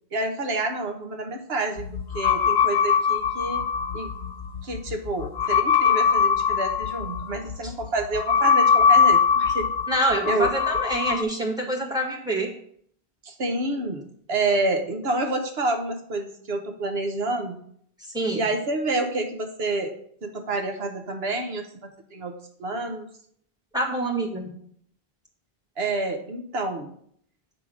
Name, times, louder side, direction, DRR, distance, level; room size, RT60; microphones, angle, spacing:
voice 1, 0.1-1.9 2.1-3.6 3.9-4.1 4.6-9.7 10.2-10.5 13.2-17.6 18.3-19.9 20.2-23.1 25.8-26.9, right 2 dB, 75° right, 5 dB, 1.2 m, -28 dB
sound 1, 1.8-11.2, left 6 dB, 80° left, 0.9 m, -22 dB
voice 2, 9.9-12.5 18.1-18.4 23.7-24.5, right 1 dB, 5° right, 0 dB, 1.6 m, -26 dB
8.2 x 3.6 x 6.2 m, 0.65 s
omnidirectional pair, 1.0 m